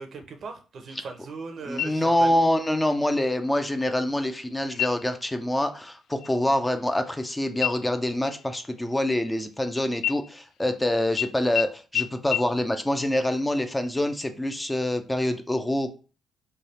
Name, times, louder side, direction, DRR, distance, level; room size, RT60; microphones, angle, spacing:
voice 1, 0.0-2.5, right 4 dB, 55° right, 6 dB, 0.6 m, -39 dB
voice 2, 1.6-15.9, left 1 dB, 10° left, 7 dB, 0.4 m, -26 dB
sound 1, 1.8-2.4 2.8-2.9 3.5-4.0 4.7-5.2 5.6-5.9 6.2-7.3 7.6-9.6 10.0-10.8 11.2-11.3 11.5-11.6 11.9-12.0 12.3-12.4, left 11 dB, 80° left, 0.3 m, -31 dB
3.3 x 2.3 x 4.1 m, 0.36 s
cardioid pair, 90°, 0 cm